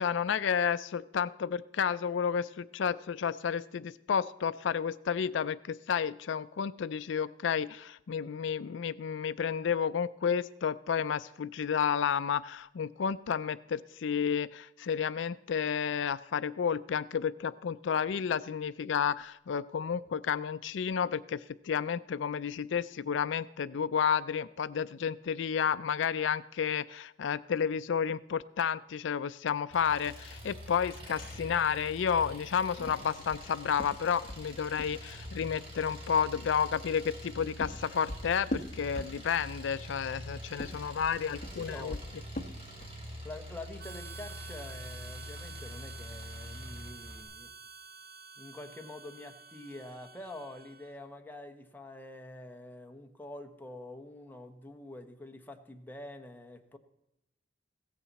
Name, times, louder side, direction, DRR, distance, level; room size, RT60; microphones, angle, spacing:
voice 1, 0.0-42.0, left 7 dB, 70° left, 15 dB, 0.4 m, -31 dB
Engine, 29.7-47.2, left 1 dB, 30° right, 3.6 m, -45 dB
sound 1, 32.8-35.4 37.1-39.6 40.5-43.1, left 1 dB, 40° left, 1.0 m, -41 dB
voice 2, 41.5-42.1 43.2-47.5 48.4-56.8, left 1 dB, 10° left, 4 dB, 1.1 m, -46 dB
Harmonica, 43.8-51.1, right 5 dB, 50° right, 0.8 m, -50 dB
16.0 x 14.0 x 4.1 m, 0.87 s
head